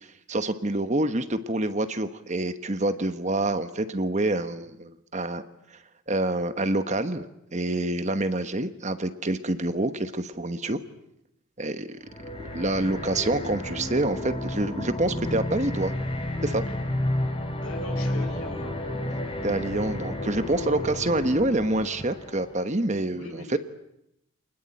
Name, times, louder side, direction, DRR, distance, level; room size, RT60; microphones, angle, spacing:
voice 1, 0.0-5.4 5.7-5.8 6.1-7.3 7.5-10.8 11.6-12.0 12.5-15.9 16.4-16.6 19.4-23.6, right 2 dB, 30° right, 10 dB, 1.1 m, -27 dB
sound 1, 12.1-22.6, left 1 dB, 25° left, 3.3 m, -31 dB
voice 2, 17.6-18.7 23.1-23.6, left 2 dB, 80° left, 4 dB, 5.6 m, -40 dB
28.0 x 20.0 x 9.0 m, 0.83 s
head